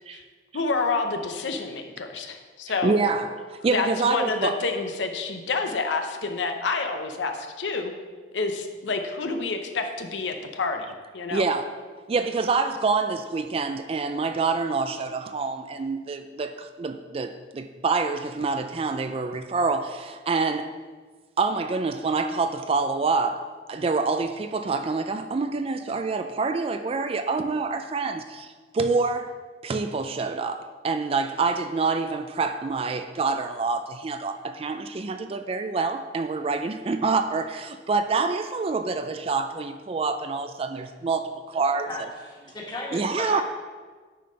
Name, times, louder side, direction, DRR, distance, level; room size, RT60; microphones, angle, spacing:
voice 1, 0.5-2.9 3.7-7.9 8.3-11.5, left 4 dB, 85° left, 5 dB, 0.7 m, -28 dB
voice 2, 2.8-4.6 11.3-11.7 12.1-20.7 21.4-29.4 29.6-41.9 42.9-43.4, right 4 dB, 30° right, 9 dB, 0.3 m, -26 dB
voice 3, 42.3-43.4, left 1 dB, 25° left, -3 dB, 1.7 m, -35 dB
9.2 x 4.3 x 5.1 m, 1.4 s
head